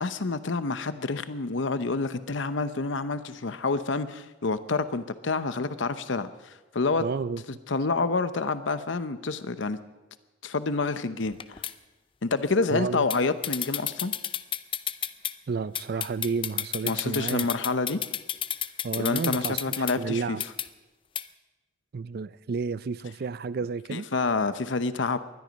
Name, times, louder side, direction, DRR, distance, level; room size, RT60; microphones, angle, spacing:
voice 1, 0.0-7.0 7.7-9.8 10.4-11.6 12.2-14.1 16.8-18.0 19.0-20.4 23.9-25.2, left 3 dB, 75° left, 0.8 m, -28 dB
voice 2, 7.0-7.4 12.7-13.1 15.5-17.5 18.8-19.6 20.0-20.4 21.9-24.1, right 5 dB, 50° right, 0.4 m, -31 dB
sound 1, 11.3-11.7 13.1-13.2 13.4-15.3 15.8-19.9 20.4-20.7 21.2-21.3, left 10 dB, 25° left, 0.5 m, -31 dB
20.0 x 12.5 x 5.3 m
head